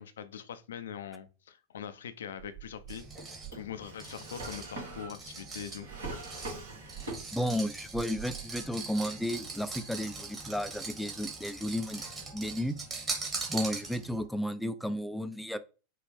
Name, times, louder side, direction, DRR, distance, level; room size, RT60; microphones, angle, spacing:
voice 1, 0.0-3.0 3.5-5.9, left 8 dB, 70° left, 0.4 m, -42 dB
Drawer open or close, 2.4-7.6 7.9-8.7, right 3 dB, 70° right, 1.8 m, -43 dB
sound 1, 2.9-14.3, right 4 dB, 25° right, 1.5 m, -41 dB
voice 2, 7.3-12.0 12.3-12.8 13.5-15.6, equal, ahead, 0.4 m, -33 dB
5.5 x 2.5 x 3.1 m
figure-of-eight pair, 85°, 0 cm